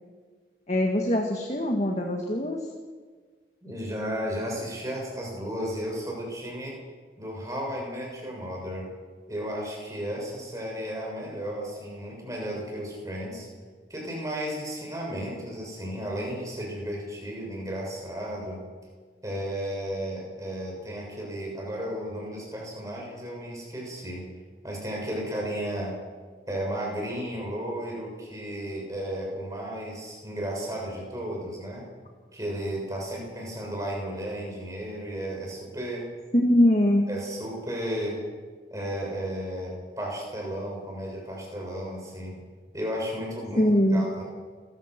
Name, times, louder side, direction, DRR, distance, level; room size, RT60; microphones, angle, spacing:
voice 1, 0.7-2.6 36.3-37.1 43.6-44.1, left 1 dB, 40° left, 1 dB, 2.1 m, -22 dB
voice 2, 3.6-6.8 7.2-8.9 9.3-13.5 13.9-18.6 19.2-24.3 24.6-26.0 26.5-31.9 32.3-36.1 37.1-38.2 38.7-42.4 42.7-43.6 43.9-44.2, equal, 20° right, -1 dB, 6.8 m, -34 dB
29.5 x 15.0 x 6.1 m, 1.5 s
head